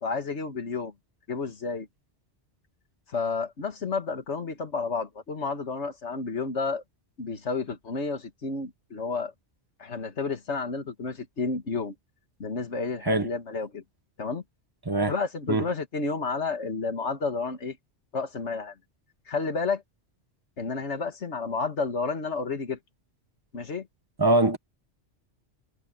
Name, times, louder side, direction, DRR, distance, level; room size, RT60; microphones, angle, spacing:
voice 1, 0.0-0.9 1.3-1.9 3.1-6.8 7.2-9.3 9.8-11.9 12.4-13.8 14.2-14.4 15.1-17.8 18.1-18.7 19.3-19.8 20.6-22.8 23.5-23.9, left 4 dB, 75° left, 2.1 m, -31 dB
voice 2, 24.2-24.6, right 2 dB, 20° right, 1.4 m, -22 dB
omnidirectional pair, 1.2 m